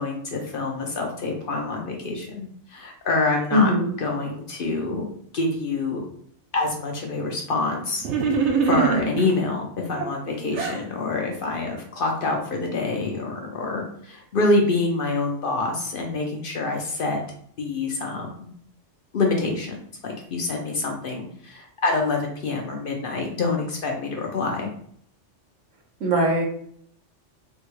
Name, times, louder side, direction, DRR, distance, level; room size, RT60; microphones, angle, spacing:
voice 1, 0.0-3.7 4.0-5.0 5.3-6.0 6.5-8.1 8.6-17.2 17.6-18.5 19.1-19.8 20.0-24.7, left 3 dB, 55° left, 1 dB, 0.7 m, -26 dB
voice 2, 3.5-3.9 26.0-26.4, equal, 90° right, -1 dB, 1.3 m, -20 dB
sound 1, 8.0-9.4 10.0-10.8, right 5 dB, 75° right, 0.9 m, -23 dB
3.5 x 2.2 x 3.0 m, 0.63 s
omnidirectional pair, 1.3 m